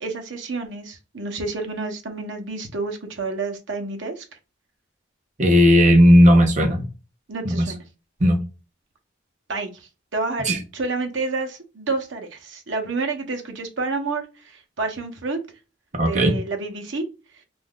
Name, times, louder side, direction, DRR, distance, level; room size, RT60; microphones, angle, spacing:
voice 1, 0.0-4.2 7.3-7.8 9.5-15.4 15.9-17.1, right 3 dB, 70° right, 0.8 m, -29 dB
voice 2, 5.4-6.9 7.5-7.6 8.2-8.4 10.4-10.6 16.0-16.3, equal, 40° right, 0.7 m, -15 dB
2.5 x 2.3 x 3.5 m
head